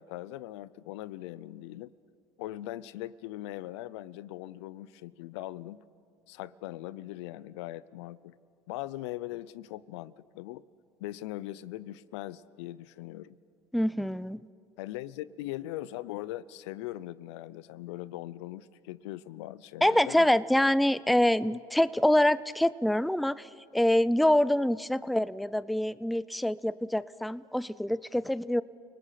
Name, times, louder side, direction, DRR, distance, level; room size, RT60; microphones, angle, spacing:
voice 1, 0.0-1.9 2.4-5.8 6.3-8.3 8.7-10.6 11.0-13.4 14.8-20.3, left 15 dB, 80° left, 19 dB, 0.5 m, -40 dB
voice 2, 13.7-14.4 19.8-28.6, left 1 dB, ahead, 18 dB, 0.4 m, -25 dB
29.0 x 19.0 x 5.8 m, 2.4 s
hypercardioid pair, 75°, 14 cm